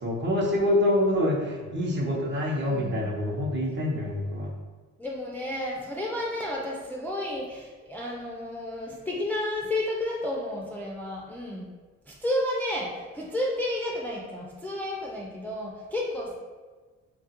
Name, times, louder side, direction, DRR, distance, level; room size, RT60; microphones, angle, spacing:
voice 1, 0.0-4.5, left 1 dB, 40° right, -1 dB, 0.7 m, -26 dB
voice 2, 2.3-3.1 5.0-11.7 12.1-16.3, left 1 dB, 5° left, -3 dB, 0.3 m, -32 dB
2.9 x 2.3 x 2.8 m, 1.4 s
cardioid pair, 90°, 30 cm